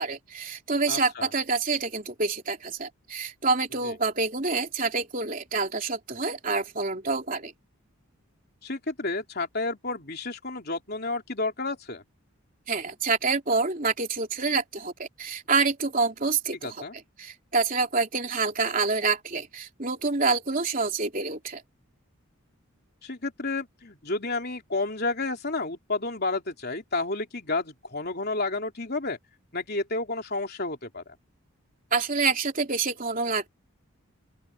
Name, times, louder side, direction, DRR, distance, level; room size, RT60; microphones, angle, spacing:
voice 1, 0.0-7.5 12.7-16.8 17.2-21.6 31.9-33.5, right 4 dB, 40° right, 3.4 m, -27 dB
voice 2, 0.9-1.3 3.8-3.9 8.6-12.0 16.6-16.9 23.0-29.2 29.5-31.2, left 3 dB, 45° left, 3.5 m, -31 dB
open air
head